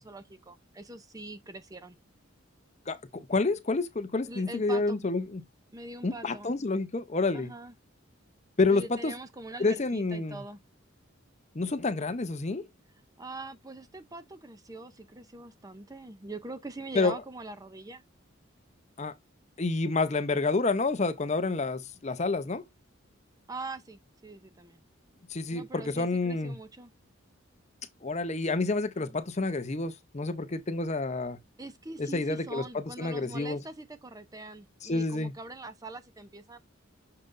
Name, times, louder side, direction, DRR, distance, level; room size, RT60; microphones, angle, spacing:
voice 1, 0.0-2.0 4.3-5.0 5.7-6.5 7.3-7.7 8.7-10.6 13.2-18.0 23.5-24.8 25.5-26.9 29.0-29.2 31.6-36.6, right 2 dB, 15° right, 0.6 m, -43 dB
voice 2, 2.9-5.4 6.0-7.5 8.6-9.1 9.6-10.4 11.5-12.6 16.9-17.2 19.0-19.1 19.6-22.6 25.3-26.6 28.0-31.4 32.0-32.6 33.0-33.6 34.8-35.3, left 3 dB, 35° left, 0.6 m, -29 dB
6.6 x 5.7 x 2.5 m
head